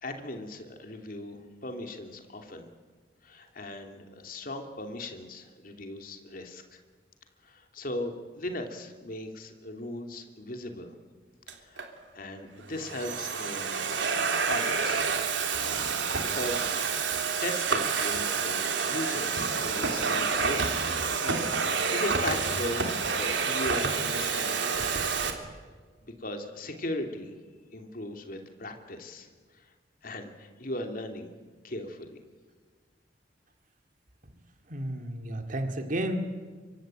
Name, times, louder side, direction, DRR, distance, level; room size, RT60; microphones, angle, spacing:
voice 1, 0.0-2.7 3.2-6.8 7.4-10.9 11.5-11.9 12.1-13.9 14.5-15.1 16.3-16.7 17.4-20.7 21.2-24.8 25.4-25.5 26.0-27.3 27.7-29.3 29.5-29.7 30.0-31.3 31.6-32.2, left 1 dB, 50° left, 4 dB, 3.0 m, -38 dB
Domestic sounds home sounds, 11.5-11.9 12.6-25.3, right 5 dB, 80° right, 3.3 m, -28 dB
voice 2, 34.7-36.2, right 1 dB, 45° right, 6 dB, 2.3 m, -32 dB
25.5 x 25.0 x 9.1 m, 1.5 s
head